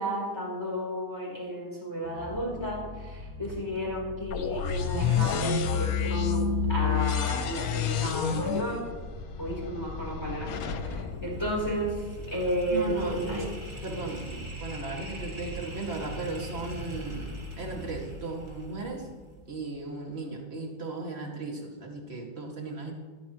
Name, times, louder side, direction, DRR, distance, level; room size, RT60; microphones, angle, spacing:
voice 1, 0.0-8.8 9.4-12.0 12.3-13.4, equal, 15° left, -4 dB, 4.0 m, -32 dB
sound 1, 2.0-18.1, left 1 dB, 50° right, 2.3 m, -43 dB
sound 2, 4.3-12.2, left 7 dB, 60° left, 1.2 m, -29 dB
sound 3, 10.5-19.7, right 2 dB, 15° right, 2.2 m, -43 dB
voice 2, 12.7-13.5 13.8-19.1 19.5-22.9, right 3 dB, 35° right, 0 dB, 2.4 m, -36 dB
19.5 x 14.0 x 3.1 m, 1.4 s
omnidirectional pair, 1.9 m